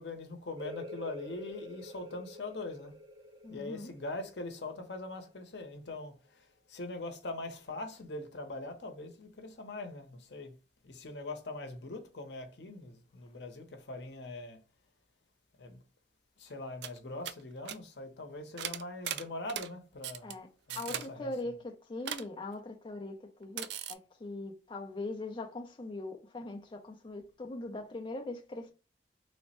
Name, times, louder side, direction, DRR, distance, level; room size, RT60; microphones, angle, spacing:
voice 1, 0.0-3.0 3.5-10.5 10.8-14.6 15.6-15.8 16.4-20.3 20.7-21.3, left 2 dB, 75° left, 0.7 m, -42 dB
sound 1, 0.6-5.9, left 1 dB, 25° right, 0.6 m, -48 dB
voice 2, 3.4-3.9 12.7-12.8 20.2-28.7, left 2 dB, 30° left, 0.4 m, -41 dB
sound 2, 16.5-16.6 16.8-17.0 17.2-17.4 17.7-17.8 18.6-19.7 20.0-20.3 20.7-21.1 22.1-22.3 23.6-23.9, right 10 dB, 70° right, 0.3 m, -38 dB
3.2 x 2.1 x 4.1 m
head